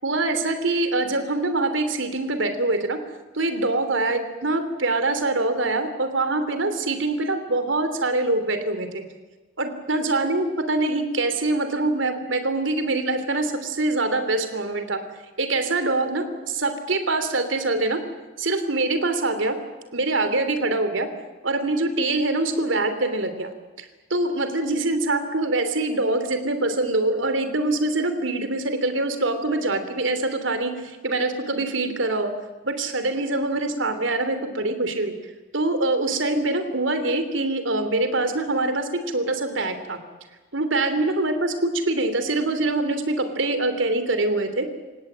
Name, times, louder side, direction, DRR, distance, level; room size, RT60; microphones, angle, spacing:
voice 1, 0.0-3.0 3.3-9.0 9.6-15.0 15.4-18.0 18.4-19.5 19.9-21.1 21.4-23.5 23.8-32.3 32.6-35.1 35.5-38.9 39.1-40.0 40.5-44.6, right 2 dB, 70° right, 9 dB, 3.1 m, -24 dB
27.5 x 17.0 x 8.8 m, 1.2 s
head